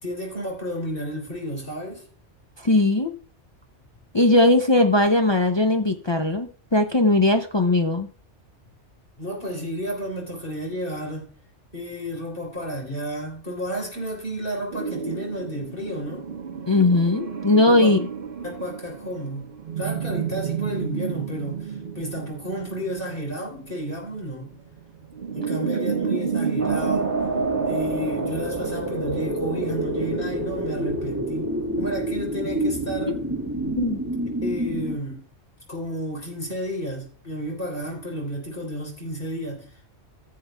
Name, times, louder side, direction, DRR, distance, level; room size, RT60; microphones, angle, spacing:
voice 1, 0.0-2.0 9.2-11.3 11.7-16.3 17.7-18.0 18.4-24.5 25.3-27.1 27.7-31.5 31.8-33.2 34.4-35.2 35.7-39.9, equal, 50° left, 3.6 m, -32 dB
voice 2, 2.6-3.1 4.1-8.1 16.7-18.1 33.8-34.0, left 2 dB, 30° left, 0.5 m, -19 dB
sound 1, 14.7-30.4, right 6 dB, 50° right, 1.2 m, -31 dB
sound 2, 26.6-35.0, right 1 dB, 15° right, 1.9 m, -28 dB
15.5 x 7.5 x 2.3 m
omnidirectional pair, 1.2 m